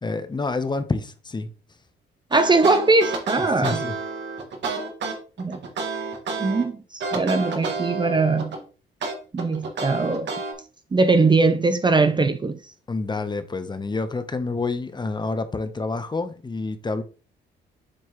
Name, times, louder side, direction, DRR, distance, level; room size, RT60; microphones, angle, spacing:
voice 1, 0.0-1.5 3.4-4.0 12.9-17.0, left 3 dB, 20° left, 0.9 m, -28 dB
voice 2, 2.3-3.8 5.4-5.6 6.4-8.5 9.3-10.3 10.9-12.6, right 3 dB, 25° right, 0.6 m, -20 dB
sound 1, 2.3-6.6 7.0-8.6 9.0-10.5, right 4 dB, 65° right, 1.8 m, -30 dB
7.4 x 4.5 x 3.1 m
cardioid pair, 90°, 20 cm